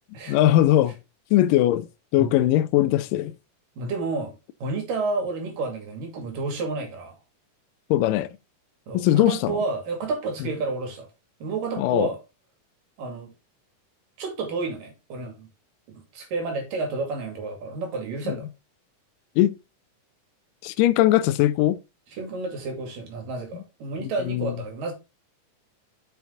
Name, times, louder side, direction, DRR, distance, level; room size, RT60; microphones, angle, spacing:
voice 1, 0.3-1.0 1.3-1.9 2.1-3.3 7.9-8.3 8.9-9.6 11.8-12.1 18.3-18.4 19.4-19.5 20.6-21.8 24.0-24.6, left 14 dB, 85° left, 2.2 m, -20 dB
voice 2, 3.8-4.4 4.6-7.1 8.9-11.1 11.4-12.2 13.0-13.3 14.2-15.5 15.9-18.5 22.1-24.9, right 3 dB, 85° right, 4.0 m, -30 dB
7.0 x 6.1 x 3.9 m
omnidirectional pair, 3.8 m